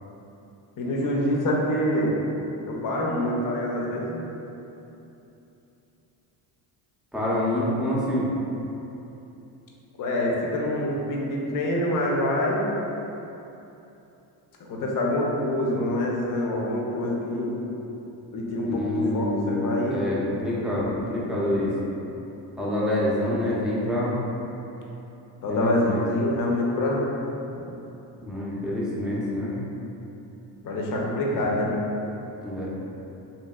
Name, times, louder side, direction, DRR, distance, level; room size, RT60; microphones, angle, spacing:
voice 1, 0.8-2.1 2.6-4.2 10.0-12.6 14.6-17.6 18.3-20.1 25.4-27.1 30.6-31.8, left 1 dB, 40° left, -3 dB, 0.6 m, -26 dB
voice 2, 7.1-8.3 18.7-21.7 22.6-24.1 25.5-26.0 28.2-29.5 32.4-32.7, left 1 dB, ahead, -8 dB, 0.6 m, -26 dB
2.8 x 2.7 x 2.3 m, 2.9 s
supercardioid pair, 75°, 49 cm